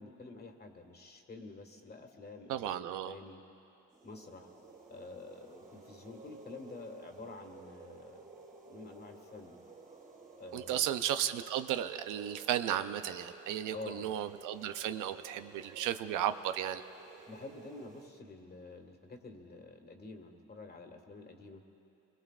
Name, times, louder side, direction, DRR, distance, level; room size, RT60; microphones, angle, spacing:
voice 1, 0.0-3.4 4.0-4.5 4.9-8.3 8.7-9.6 10.3-10.9 13.7-14.1 17.3-21.6, left 3 dB, 30° left, 4 dB, 1.7 m, -48 dB
voice 2, 2.5-3.2 10.5-16.8, right 11 dB, 85° right, 9 dB, 0.6 m, -34 dB
sound 1, 3.9-18.1, right 4 dB, 25° right, 2.0 m, -54 dB
24.5 x 21.5 x 2.4 m, 2.8 s
cardioid pair, 90°, 30 cm